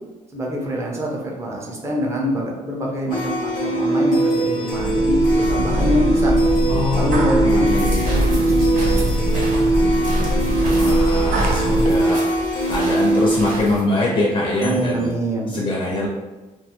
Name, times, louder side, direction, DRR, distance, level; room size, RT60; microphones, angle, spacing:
voice 1, 0.3-6.3 6.8-9.8 11.5-11.9 14.6-15.5, equal, 20° right, -2 dB, 0.5 m, -26 dB
sound 1, 3.1-14.9, right 1 dB, 85° left, 0.6 m, -21 dB
sound 2, 4.7-12.0, right 1 dB, 90° right, 0.4 m, -22 dB
voice 2, 6.7-8.1 10.8-12.2 12.7-15.1 15.5-16.1, left 2 dB, 35° left, -3 dB, 0.4 m, -23 dB
sound 3, 7.6-13.8, right 1 dB, 70° right, 0.9 m, -32 dB
2.3 x 2.2 x 2.8 m, 1.1 s
cardioid pair, 165°, 14 cm